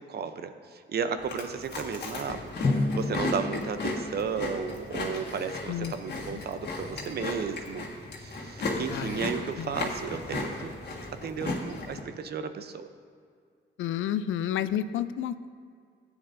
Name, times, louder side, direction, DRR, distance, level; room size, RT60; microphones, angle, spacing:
voice 1, 0.0-7.9 8.2-10.7 11.2-12.9, right 6 dB, 55° right, 9 dB, 0.7 m, -34 dB
Chewing mastication, 1.2-12.0, left 2 dB, 55° left, 1.7 m, -35 dB
Drum, 2.6-5.4, left 3 dB, 35° left, 0.9 m, -32 dB
voice 2, 8.9-9.2 9.6-9.8 13.8-15.5, left 10 dB, 80° left, 13 dB, 0.4 m, -31 dB
14.0 x 8.9 x 2.6 m, 2.1 s
cardioid pair, 105°, 20 cm